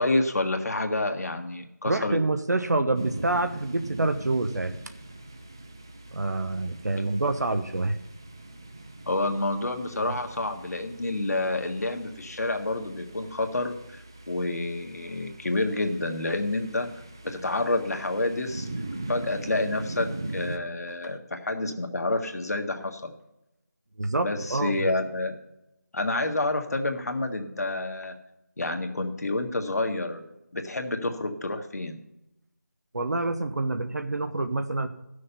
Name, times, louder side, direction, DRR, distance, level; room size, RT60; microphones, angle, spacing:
voice 1, 0.0-2.2 7.0-7.1 9.1-16.9 17.2-18.7 19.1-23.1 24.2-25.3 25.9-28.1 28.6-30.2 30.5-32.0, left 2 dB, 60° left, 5 dB, 1.6 m, -28 dB
voice 2, 1.8-4.7 6.1-8.0 10.0-10.1 24.0-24.7 32.9-34.9, right 2 dB, 70° right, 8 dB, 1.0 m, -27 dB
sound 1, 2.9-20.6, right 2 dB, 15° right, 0.3 m, -41 dB
13.5 x 6.6 x 5.6 m, 0.90 s
figure-of-eight pair, 170°, 10 cm